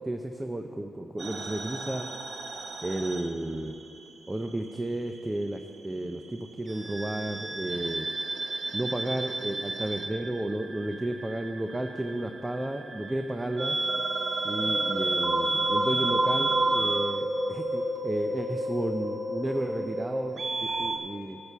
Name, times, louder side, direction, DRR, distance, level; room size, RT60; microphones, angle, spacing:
voice 1, 0.0-2.1 2.5-3.8 4.3-8.1 8.7-13.8 14.4-21.4, right 1 dB, 15° right, 5 dB, 0.5 m, -33 dB
sound 1, 1.2-4.0 4.3-5.5 6.7-21.0, right 2 dB, 55° right, 0.8 m, -31 dB
10.5 x 6.8 x 5.6 m, 2.7 s
cardioid pair, 65°, 0 cm